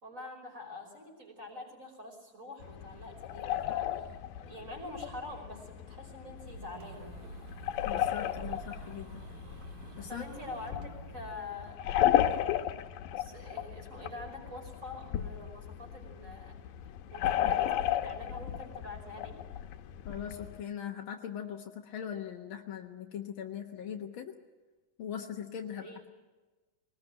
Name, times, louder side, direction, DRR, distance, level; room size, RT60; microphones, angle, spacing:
voice 1, 0.0-4.1 4.4-7.1 10.1-11.8 12.2-12.7 13.2-19.4 25.7-26.0, left 2 dB, 20° right, 1 dB, 5.5 m, -46 dB
sound 1, 2.6-20.6, left 12 dB, 85° left, 2.6 m, -34 dB
sound 2, 6.5-11.3, right 6 dB, 50° right, 1.7 m, -49 dB
voice 2, 7.8-9.2 10.0-10.2 20.0-24.3 25.0-26.1, left 8 dB, 60° left, 2 dB, 1.3 m, -40 dB
21.5 x 20.0 x 8.9 m, 1.3 s
omnidirectional pair, 3.9 m